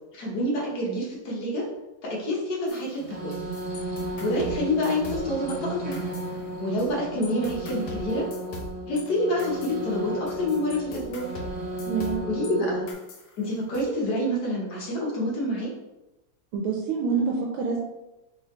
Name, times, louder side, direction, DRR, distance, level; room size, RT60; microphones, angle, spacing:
voice 1, 0.1-1.7 2.0-3.4 4.2-6.0 6.6-8.3 8.9-11.3 12.3-12.9 13.4-15.7, left 1 dB, 55° left, -3 dB, 1.4 m, -27 dB
sound 1, 2.7-5.6 5.9-6.9 7.2-12.5 12.9-13.8, left 1 dB, 80° left, 1.6 m, -42 dB
sound 2, 3.0-12.9, right 1 dB, 65° right, 0.8 m, -34 dB
voice 2, 11.9-12.2 16.5-17.8, right 5 dB, 85° right, -1 dB, 1.5 m, -26 dB
3.9 x 3.7 x 3.1 m, 0.99 s
omnidirectional pair, 2.3 m